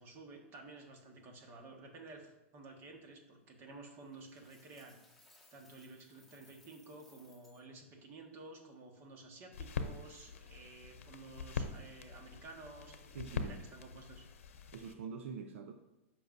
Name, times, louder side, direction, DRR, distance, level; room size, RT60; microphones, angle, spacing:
voice 1, 0.0-5.0 5.5-14.2, right 3 dB, 35° right, 2 dB, 1.6 m, -53 dB
Coin (dropping), 4.1-7.6, left 2 dB, ahead, 1.7 m, -65 dB
sound 1, 9.5-14.9, left 5 dB, 90° left, 0.8 m, -43 dB
voice 2, 13.1-13.7 14.7-15.7, right 6 dB, 75° right, 5 dB, 0.6 m, -45 dB
13.0 x 5.5 x 2.7 m, 0.96 s
hypercardioid pair, 140°, 7 cm